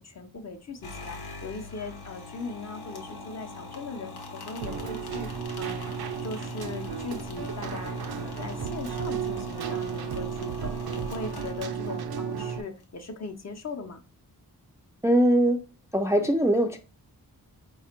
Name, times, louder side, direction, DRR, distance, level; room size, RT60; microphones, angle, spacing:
voice 1, 0.0-5.3 5.6-5.8 6.2-14.0, left 3 dB, 45° left, 0.7 m, -39 dB
sound 1, 0.8-12.2, left 3 dB, 90° left, 1.0 m, -42 dB
Keyboard (musical), 4.6-12.6, right 7 dB, 85° right, 0.6 m, -34 dB
voice 2, 15.0-15.6 15.9-16.8, right 1 dB, 10° right, 0.3 m, -21 dB
4.9 x 2.4 x 4.3 m
wide cardioid pair, 120°, 37 cm